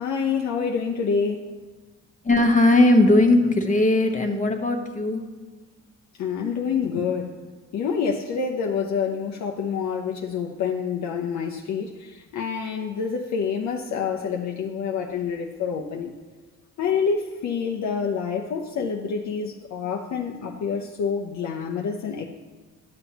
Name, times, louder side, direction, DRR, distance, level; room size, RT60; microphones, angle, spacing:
voice 1, 0.0-1.5 6.2-7.3 7.7-16.1 16.8-22.2, left 6 dB, 65° left, 0 dB, 0.7 m, -27 dB
voice 2, 2.2-5.3, left 2 dB, 25° left, 4 dB, 1.1 m, -18 dB
11.5 x 7.1 x 2.9 m, 1.4 s
cardioid pair, 90°, 30 cm